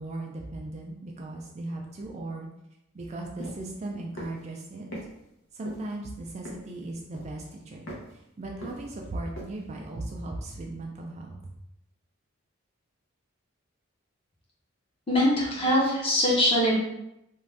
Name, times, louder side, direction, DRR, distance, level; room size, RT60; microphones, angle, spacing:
voice 1, 0.0-2.5 2.9-4.9 5.5-7.8 8.1-11.5, right 2 dB, 30° right, 0 dB, 0.3 m, -37 dB
sound 1, 3.4-3.6 4.2-4.4 4.9-5.1 5.7-5.9 6.5-6.8 7.1-7.5 7.9-8.1 8.6-9.0 9.4-9.5, equal, 65° left, 0.7 m, -40 dB
voice 2, 15.1-16.7, left 1 dB, 25° left, -5 dB, 0.8 m, -22 dB
2.5 x 2.3 x 3.3 m, 0.84 s
head